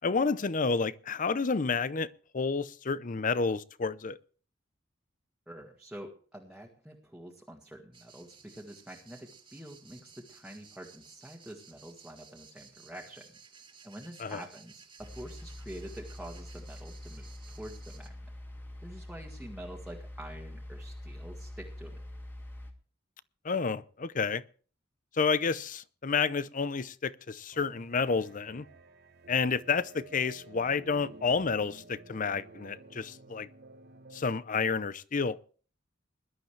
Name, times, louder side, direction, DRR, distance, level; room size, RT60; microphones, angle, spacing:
voice 1, 0.0-4.2 14.2-14.4 23.4-24.4 25.1-28.7 29.3-33.5 34.1-35.4, left 5 dB, 45° left, 0.6 m, -30 dB
voice 2, 5.5-13.4 13.8-18.1 18.8-22.0, right 1 dB, 5° right, 1.9 m, -47 dB
sound 1, 7.9-18.1, right 6 dB, 30° right, 2.3 m, -56 dB
sound 2, 15.0-22.7, left 1 dB, 10° left, 2.2 m, -45 dB
sound 3, 27.5-34.4, right 2 dB, 55° right, 1.1 m, -52 dB
21.0 x 12.0 x 3.3 m
head